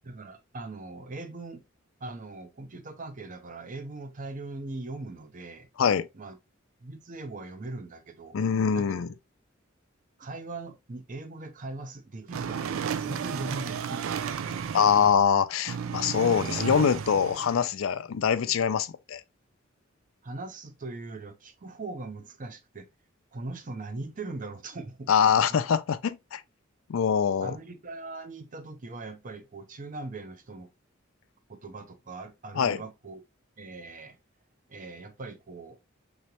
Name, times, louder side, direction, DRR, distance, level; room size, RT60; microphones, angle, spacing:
voice 1, 0.0-1.6 2.0-5.7 6.1-6.4 6.8-8.4 8.7-8.9 10.2-14.6 20.2-22.9 23.3-25.1 25.3-25.6 27.4-30.7 31.5-33.2 33.6-34.2 34.7-35.8, right 2 dB, 40° right, 0.7 m, -40 dB
voice 2, 8.3-9.1 14.7-19.2 25.1-26.4 26.9-27.6 32.5-32.8, left 7 dB, 85° left, 0.4 m, -24 dB
sound 1, 12.3-15.3 15.7-17.7, right 7 dB, 90° right, 0.4 m, -33 dB
3.8 x 3.1 x 2.9 m
head